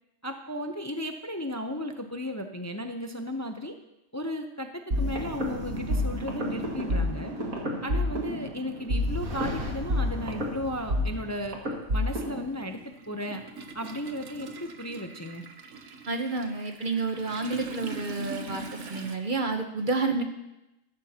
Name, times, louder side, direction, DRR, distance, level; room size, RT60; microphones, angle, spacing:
voice 1, 0.2-3.7 4.1-4.7 5.0-7.3 7.8-11.6 11.9-12.8 13.1-13.4 13.7-15.4 20.1-20.2, left 1 dB, 20° left, 5 dB, 0.5 m, -35 dB
sound 1, 4.9-12.5, left 1 dB, 90° right, 2.4 m, -30 dB
Toilet flush, 8.7-8.8 10.0-10.2 10.5-19.2, right 3 dB, 65° right, 1.3 m, -43 dB
voice 2, 16.1-20.2, right 3 dB, 40° right, 5 dB, 1.0 m, -30 dB
14.5 x 13.5 x 2.9 m, 0.93 s
omnidirectional pair, 1.4 m